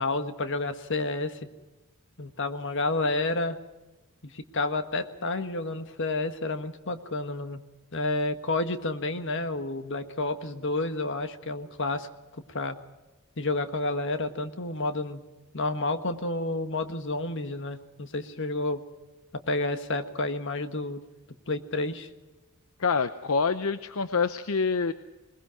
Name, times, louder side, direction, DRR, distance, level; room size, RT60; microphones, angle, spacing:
voice 1, 0.0-1.4 2.2-3.6 4.2-7.6 7.9-12.1 12.3-12.8 13.4-15.2 15.5-18.8 19.3-21.0 21.5-22.1, left 2 dB, 55° left, 8 dB, 1.6 m, -30 dB
voice 2, 22.8-24.9, left 5 dB, 75° left, 11 dB, 0.7 m, -26 dB
21.5 x 21.0 x 5.9 m, 1.1 s
head